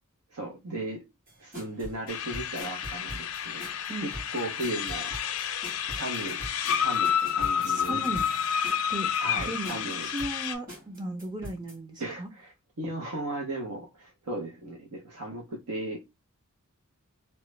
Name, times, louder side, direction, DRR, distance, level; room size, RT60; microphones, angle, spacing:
voice 1, 0.3-1.0 1.4-3.6 4.0-5.1 5.4-5.5 5.9-6.4 6.7-8.0 9.2-10.1 12.0-16.1, right 1 dB, 90° right, 0.8 m, -36 dB
sound 1, 1.3-11.8, equal, 40° right, 1.7 m, -44 dB
sound 2, 2.1-10.5, left 8 dB, 75° left, 0.5 m, -30 dB
voice 2, 7.5-8.2 8.9-9.1 9.4-12.3, right 1 dB, 20° right, 0.4 m, -36 dB
3.0 x 2.3 x 3.1 m
head